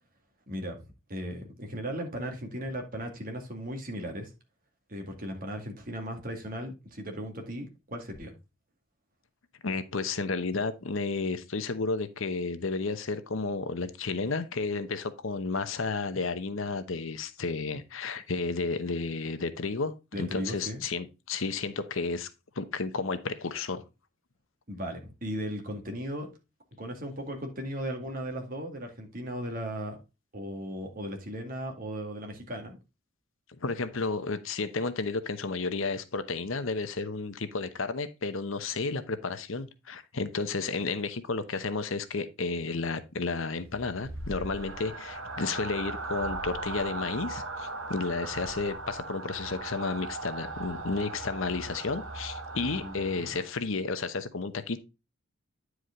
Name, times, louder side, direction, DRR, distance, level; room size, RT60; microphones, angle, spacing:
voice 1, 0.5-4.3 4.9-8.3 20.1-20.8 24.7-26.3 26.8-30.0 30.3-32.8 52.7-53.3, equal, 40° right, 2.1 m, -37 dB
voice 2, 9.6-22.3 22.6-23.8 33.6-54.8, left 4 dB, 75° left, 0.9 m, -32 dB
sound 1, 43.6-53.6, right 2 dB, 75° right, 1.4 m, -38 dB
9.7 x 4.9 x 3.7 m
head